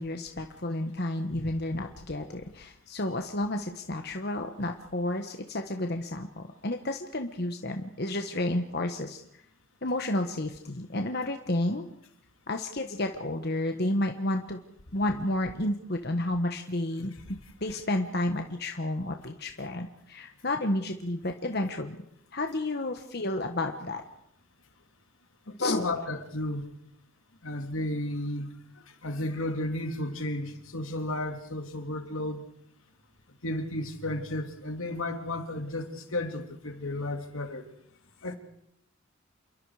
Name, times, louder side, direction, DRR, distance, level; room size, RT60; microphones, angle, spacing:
voice 1, 0.0-9.2 9.8-11.8 12.5-14.6 14.9-22.0 22.3-24.0 25.6-25.9, left 1 dB, 50° left, 5 dB, 1.4 m, -31 dB
voice 2, 25.5-26.7 27.4-28.5 29.0-32.4 33.4-37.7 38.2-38.3, left 1 dB, 80° left, 5 dB, 2.8 m, -33 dB
28.5 x 23.0 x 5.0 m, 0.73 s
head